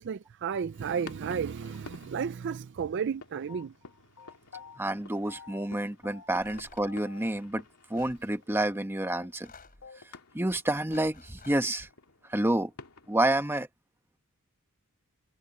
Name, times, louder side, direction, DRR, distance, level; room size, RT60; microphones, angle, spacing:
voice 1, 0.0-3.7, right 6 dB, 55° right, 0.4 m, -33 dB
sound 1, 0.7-13.2, left 3 dB, 90° left, 2.5 m, -53 dB
sound 2, 3.5-4.8 5.3-5.8 6.0-6.5 6.8-7.6 7.9-8.0 8.3-8.4 8.7-8.8 9.1-10.0, left 5 dB, 65° left, 1.4 m, -50 dB
voice 2, 4.8-7.6 7.9-9.5 10.3-11.9 12.3-12.7 13.1-13.7, right 1 dB, 10° right, 1.1 m, -29 dB
sound 3, 6.4-7.0 7.9-8.2 9.3-9.9 10.7-11.7, left 4 dB, 40° left, 4.1 m, -52 dB
head